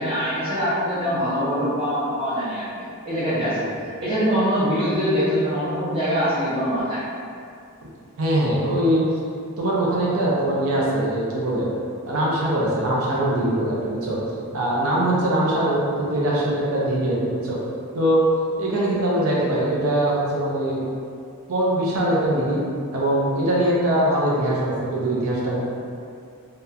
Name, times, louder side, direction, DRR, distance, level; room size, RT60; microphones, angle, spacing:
voice 1, 0.0-3.6 4.0-7.0, equal, 25° right, -13 dB, 0.5 m, -23 dB
voice 2, 8.2-9.0 9.6-11.7 12.1-14.2 14.5-17.6 17.9-18.2 18.6-20.8 21.5-22.6 22.9-25.6, right 1 dB, 75° right, -6 dB, 0.5 m, -22 dB
2.8 x 2.1 x 2.3 m, 2.4 s
head